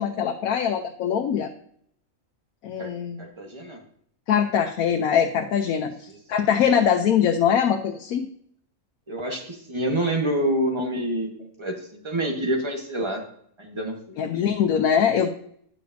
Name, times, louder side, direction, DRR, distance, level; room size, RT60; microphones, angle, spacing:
voice 1, 0.0-1.5 2.6-3.2 4.3-5.9 6.3-8.3 14.2-15.3, left 8 dB, 80° left, 4 dB, 1.1 m, -22 dB
voice 2, 3.2-3.8 5.8-6.2 9.1-13.2 13.6-14.2, right 1 dB, 20° right, 1 dB, 1.2 m, -27 dB
10.0 x 6.7 x 2.6 m, 0.65 s
omnidirectional pair, 1.5 m